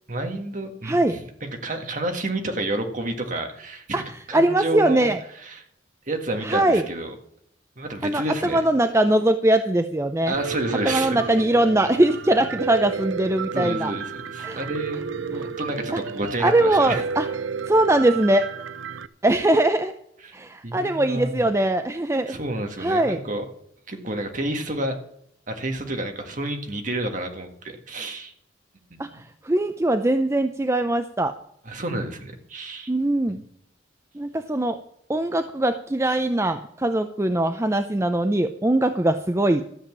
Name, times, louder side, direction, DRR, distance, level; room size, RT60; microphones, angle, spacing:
voice 1, 0.1-5.1 5.4-5.6 6.1-7.2 7.8-8.6 10.3-11.2 13.5-17.0 20.2-20.4 20.6-21.5 22.3-23.5 23.9-25.0 25.5-28.3 29.1-29.2 31.7-32.9, right 1 dB, 40° right, 5 dB, 1.7 m, -30 dB
voice 2, 0.8-1.2 3.9-5.2 6.4-6.8 8.0-8.2 8.5-10.3 10.8-13.9 14.4-14.7 15.9-16.0 16.4-17.3 17.7-18.4 19.2-19.9 20.3-22.4 22.8-23.2 29.0-31.3 32.9-33.4 34.1-34.8 35.1-39.6, right 1 dB, 15° right, 8 dB, 0.5 m, -21 dB
Piano, 10.3-19.1, right 6 dB, 85° right, 0.5 m, -32 dB
13.0 x 7.1 x 7.4 m, 0.72 s
head